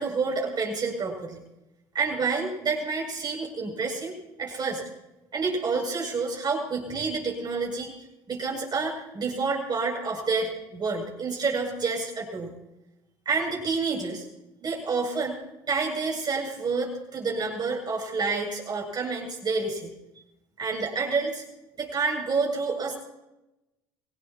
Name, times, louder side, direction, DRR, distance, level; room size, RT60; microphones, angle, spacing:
voice 1, 0.0-1.4 1.9-4.8 5.3-7.9 8.3-12.5 13.3-14.3 14.6-15.4 15.7-19.9 20.6-21.4 21.8-23.0, right 4 dB, 35° right, 0 dB, 7.8 m, -28 dB
25.0 x 17.5 x 3.1 m, 0.95 s
hypercardioid pair, 75°, 12 cm